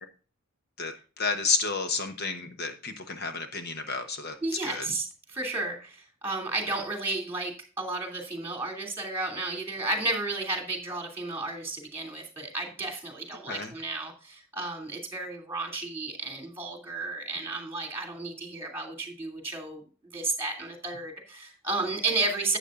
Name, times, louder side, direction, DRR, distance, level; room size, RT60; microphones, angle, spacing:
voice 1, 0.8-4.4 4.6-4.9 13.5-13.7, left 4 dB, 50° left, 7 dB, 1.0 m, -31 dB
voice 2, 4.4-19.8 20.1-22.6, right 3 dB, 10° right, 2 dB, 2.7 m, -33 dB
12.0 x 8.3 x 2.5 m, 0.37 s
head